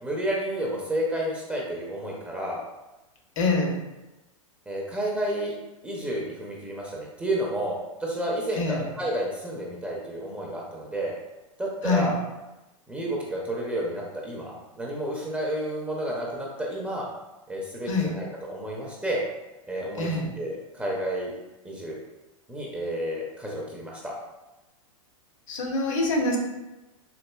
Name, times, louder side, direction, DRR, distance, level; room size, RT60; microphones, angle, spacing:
voice 1, 0.0-2.6 4.7-5.5 5.8-11.1 11.6-12.2 12.9-17.1 17.5-19.2 19.6-20.1 20.4-21.3 21.6-22.0 22.5-24.1, right 1 dB, 5° right, -3 dB, 0.5 m, -31 dB
voice 2, 3.4-3.7 8.6-8.8 11.8-12.1 17.9-18.1 20.0-20.3 25.5-26.4, left 3 dB, 70° left, 0 dB, 0.9 m, -25 dB
4.1 x 2.6 x 2.2 m, 1.0 s
hypercardioid pair, 120°, 18 cm